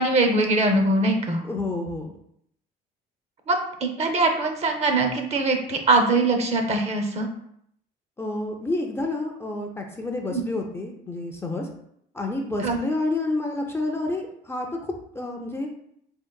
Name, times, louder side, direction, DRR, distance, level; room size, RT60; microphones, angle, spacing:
voice 1, 0.0-1.4 3.5-7.3 10.3-10.4 12.6-12.8, right 2 dB, 40° right, 5 dB, 0.5 m, -22 dB
voice 2, 1.5-2.1 8.2-11.7 12.1-14.7 15.1-15.7, left 2 dB, 15° left, 1 dB, 0.4 m, -29 dB
3.7 x 2.5 x 2.2 m, 0.71 s
cardioid pair, 110°, 17 cm